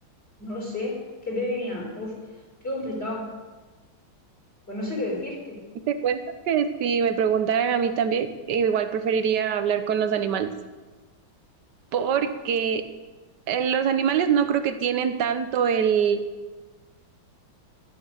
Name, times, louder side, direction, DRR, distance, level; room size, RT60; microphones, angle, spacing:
voice 1, 0.4-2.2 2.6-3.3 4.7-5.6, left 1 dB, 30° left, -3 dB, 4.5 m, -31 dB
voice 2, 5.9-6.2 6.5-10.5 11.9-12.8 13.5-16.2, right 7 dB, 60° right, 9 dB, 1.3 m, -23 dB
12.5 x 10.5 x 6.6 m, 1.3 s
omnidirectional pair, 2.3 m